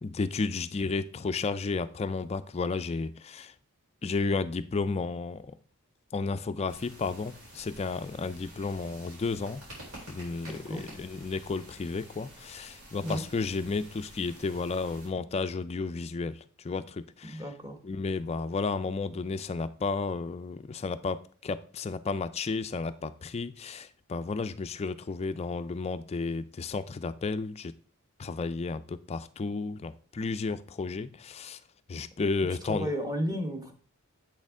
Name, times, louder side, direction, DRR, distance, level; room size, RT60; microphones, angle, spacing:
voice 1, 0.0-3.5 4.0-5.5 6.1-9.6 10.1-17.4 17.8-27.7 28.2-31.6 31.9-32.9, left 4 dB, 30° left, 12 dB, 0.3 m, -32 dB
sound 1, 6.7-15.1, right 1 dB, 75° right, 4.2 m, -49 dB
voice 2, 10.4-10.8 13.0-13.2 17.2-17.8 32.4-33.7, equal, 15° right, 4 dB, 1.2 m, -33 dB
8.1 x 6.5 x 3.6 m, 0.42 s
head